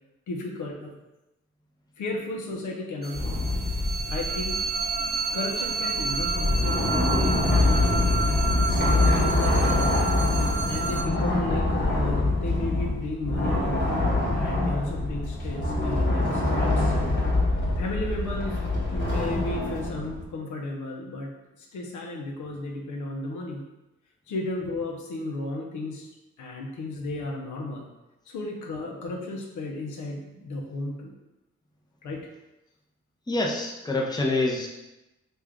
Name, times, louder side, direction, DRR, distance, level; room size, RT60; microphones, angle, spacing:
voice 1, 0.3-1.0 2.0-3.4 4.0-4.6 5.3-8.0 8.5-9.9 10.7-13.9 14.3-16.9 17.8-18.6 18.9-21.3 21.6-23.6 24.3-26.1 26.4-27.9 28.3-31.1 32.0-32.3, left 2 dB, 80° left, 0 dB, 0.7 m, -34 dB
sound 1, 3.0-11.0, right 4 dB, 35° right, 0.6 m, -30 dB
sound 2, 3.1-5.1 6.0-20.2, left 2 dB, 40° left, 1.2 m, -25 dB
voice 2, 33.3-34.7, left 2 dB, 15° left, -1 dB, 0.7 m, -26 dB
3.2 x 2.4 x 3.6 m, 0.98 s
cardioid pair, 60°, 29 cm